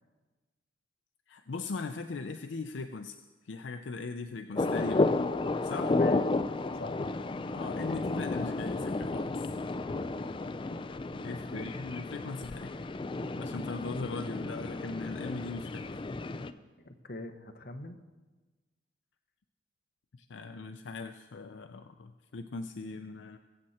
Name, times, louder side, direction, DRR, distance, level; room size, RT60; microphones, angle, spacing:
voice 1, 1.3-3.2 3.4-5.1 5.6-6.0 7.5-9.4 11.2-12.7 13.4-15.9 20.2-23.4, left 3 dB, 90° left, 7 dB, 0.5 m, -39 dB
sound 1, 4.5-16.5, left 2 dB, 30° left, 0.4 m, -32 dB
voice 2, 6.7-7.0 11.2-11.7 16.8-18.0, left 1 dB, 55° left, 6 dB, 1.0 m, -42 dB
22.0 x 7.8 x 4.3 m, 1.3 s
head